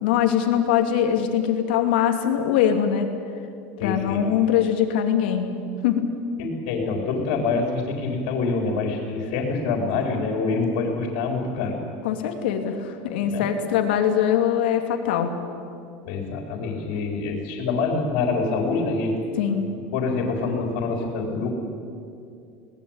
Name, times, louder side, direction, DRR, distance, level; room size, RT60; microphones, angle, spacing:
voice 1, 0.0-3.1 3.8-5.5 5.8-6.1 12.0-15.3 19.4-19.7, left 9 dB, 90° left, 5 dB, 2.7 m, -22 dB
voice 2, 3.8-4.2 6.4-11.8 13.3-13.4 16.0-19.2 19.9-21.5, left 4 dB, 60° left, 1 dB, 4.2 m, -26 dB
22.0 x 19.0 x 9.0 m, 2.4 s
cardioid pair, 175°, 5 cm